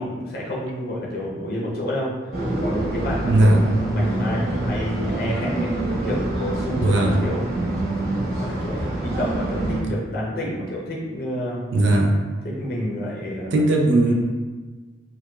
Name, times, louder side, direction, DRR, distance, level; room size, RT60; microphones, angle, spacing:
voice 1, 0.0-2.1 2.6-11.6 12.4-13.6 14.0-14.1, left 1 dB, 50° left, -4 dB, 0.6 m, -29 dB
sound 1, 2.3-9.8, right 1 dB, 50° right, 0.9 m, -26 dB
voice 2, 3.2-3.6 6.8-7.3 11.7-12.1 13.5-14.1, right 1 dB, 70° right, 0 dB, 0.4 m, -17 dB
4.5 x 2.2 x 2.2 m, 1.4 s
head